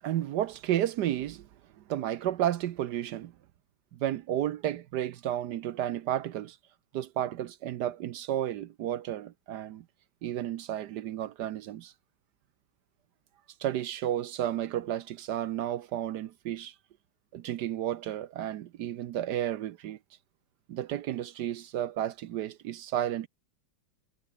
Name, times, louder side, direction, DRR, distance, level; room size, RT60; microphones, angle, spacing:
voice 1, 0.0-1.5 1.9-3.3 3.9-6.6 6.9-9.8 10.2-11.9 13.6-16.7 17.3-20.0 20.7-23.3, right 11 dB, 70° right, 1.0 m, -32 dB
omnidirectional pair, 2.4 m